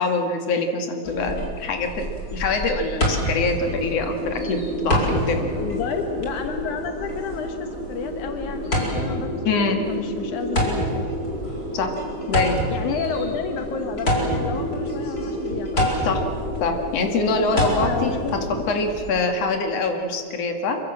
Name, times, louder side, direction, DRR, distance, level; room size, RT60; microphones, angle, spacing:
voice 1, 0.0-5.5 9.4-9.8 11.7-11.9 12.3-12.6 16.0-16.2 16.6-18.2 18.7-20.8, left 3 dB, 60° left, 4 dB, 3.1 m, -24 dB
sound 1, 1.0-19.2, equal, 30° left, 4.9 m, -29 dB
sound 2, 2.9-18.8, right 1 dB, 50° right, 5.6 m, -32 dB
voice 2, 5.6-11.1 12.7-16.0 17.3-18.6, left 6 dB, 80° left, 6 dB, 2.7 m, -31 dB
26.5 x 24.0 x 7.6 m, 2.3 s
omnidirectional pair, 3.4 m